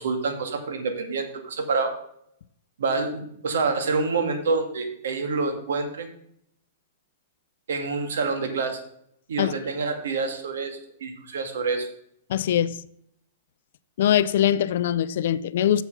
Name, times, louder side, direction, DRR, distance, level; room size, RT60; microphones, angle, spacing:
voice 1, 0.0-1.9 2.8-6.1 7.7-8.8 9.3-11.9, right 4 dB, 85° right, 1.9 m, -27 dB
voice 2, 12.3-12.8 14.0-15.8, left 10 dB, 65° left, 0.5 m, -22 dB
7.2 x 7.1 x 5.5 m
hypercardioid pair, 155°, 0 cm